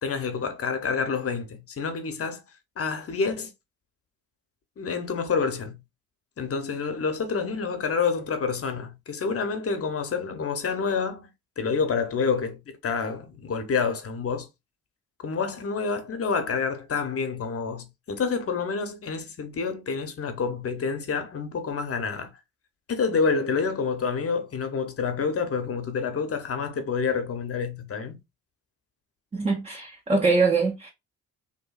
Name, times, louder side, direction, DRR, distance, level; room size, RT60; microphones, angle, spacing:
voice 1, 0.0-2.4 2.8-3.5 4.8-5.8 6.4-14.5 15.2-22.3 22.9-28.2, left 5 dB, 35° left, 0.7 m, -28 dB
voice 2, 29.3-30.9, right 4 dB, 15° right, 0.5 m, -23 dB
2.7 x 2.6 x 2.3 m
hypercardioid pair, 45°, 41 cm